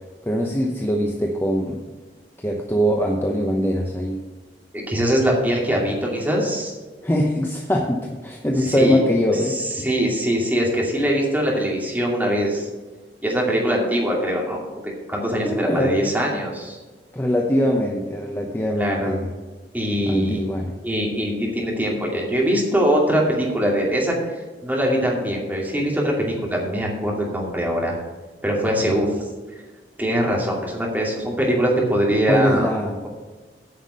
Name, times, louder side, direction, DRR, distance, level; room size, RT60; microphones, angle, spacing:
voice 1, 0.3-1.8 2.4-4.2 7.0-9.6 15.4-15.9 17.1-19.3 20.1-20.8 32.3-33.0, equal, 15° left, 0 dB, 0.8 m, -22 dB
voice 2, 4.7-6.7 8.6-9.0 9.5-12.7 13.2-16.8 18.7-19.2 19.7-20.4 20.8-24.2 24.6-27.9 28.4-29.3 30.0-32.7, equal, 10° right, -2 dB, 2.5 m, -22 dB
9.4 x 5.8 x 7.6 m, 1.3 s
head